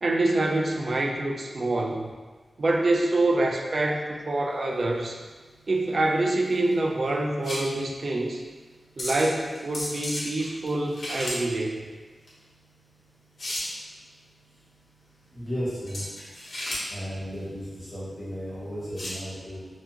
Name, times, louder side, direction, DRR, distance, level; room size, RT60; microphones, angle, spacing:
voice 1, 0.0-2.1 2.6-5.2 5.7-8.4 9.0-11.8, right 2 dB, 50° right, 0 dB, 0.3 m, -26 dB
sound 1, 4.5-19.2, left 1 dB, 65° left, 0.8 m, -37 dB
voice 2, 15.3-16.0 16.9-19.7, equal, 15° left, -10 dB, 1.1 m, -34 dB
2.4 x 2.3 x 2.8 m, 1.4 s
wide cardioid pair, 115°, 0 cm